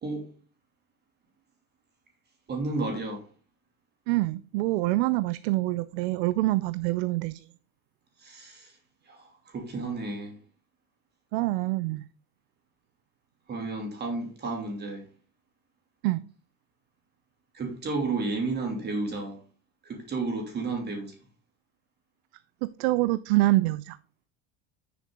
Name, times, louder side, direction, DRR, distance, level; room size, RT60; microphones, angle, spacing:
voice 1, 2.5-3.3 8.2-8.8 9.0-10.4 13.5-15.0 17.5-19.4 19.8-21.1, right 3 dB, 30° right, 2.9 m, -32 dB
voice 2, 4.1-7.5 11.3-12.0 16.0-16.2 22.6-24.0, right 19 dB, 75° right, 0.5 m, -26 dB
9.4 x 6.9 x 3.9 m
supercardioid pair, 115°, 32 cm